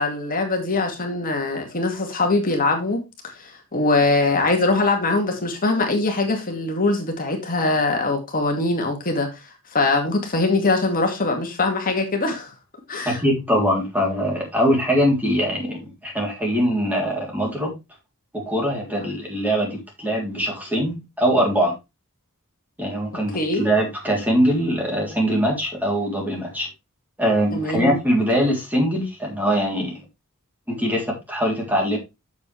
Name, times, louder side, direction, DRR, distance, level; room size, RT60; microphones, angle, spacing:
voice 1, 0.0-3.0 3.3-9.4 9.7-12.5 12.9-13.2 23.3-23.7 27.5-28.0, left 3 dB, 40° left, 2.2 m, -22 dB
voice 2, 13.0-17.7 18.4-21.7 22.8-26.7 27.2-29.9 30.7-32.0, equal, 10° right, 3.4 m, -22 dB
7.9 x 7.4 x 3.4 m
head